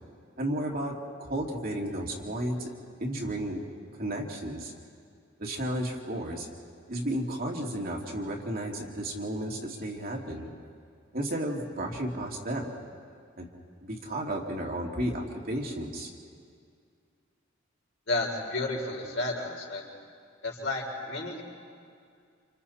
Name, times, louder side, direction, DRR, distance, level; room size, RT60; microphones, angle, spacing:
voice 1, 0.4-0.9 1.2-2.7 3.0-3.6 4.0-4.7 5.4-6.5 6.9-10.5 11.1-12.7 13.4-13.5 13.8-16.1, right 1 dB, 45° right, -1 dB, 2.7 m, -33 dB
voice 2, 18.1-19.8 20.4-21.4, left 2 dB, 60° left, -2 dB, 4.8 m, -32 dB
29.5 x 27.5 x 4.3 m, 2.3 s
head